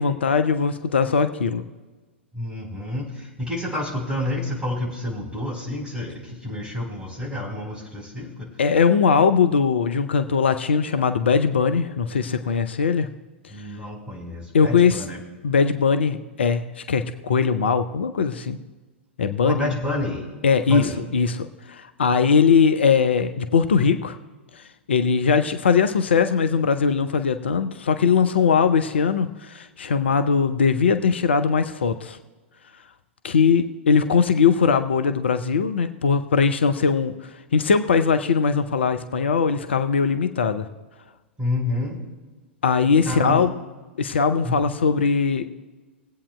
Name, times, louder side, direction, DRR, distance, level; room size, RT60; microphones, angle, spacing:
voice 1, 0.0-1.6 8.6-13.1 14.5-15.0 15.4-18.6 19.2-19.7 20.4-24.2 24.5-24.6 24.9-32.2 33.2-40.7 42.6-43.5 44.0-45.5, left 5 dB, 65° left, 9 dB, 0.6 m, -20 dB
voice 2, 2.3-8.4 13.5-15.2 19.4-20.3 20.7-21.0 41.4-42.0 43.1-43.5 44.4-44.6, left 1 dB, 15° right, -2 dB, 3.8 m, -29 dB
22.5 x 8.5 x 2.2 m, 1.3 s
figure-of-eight pair, 100°, 6 cm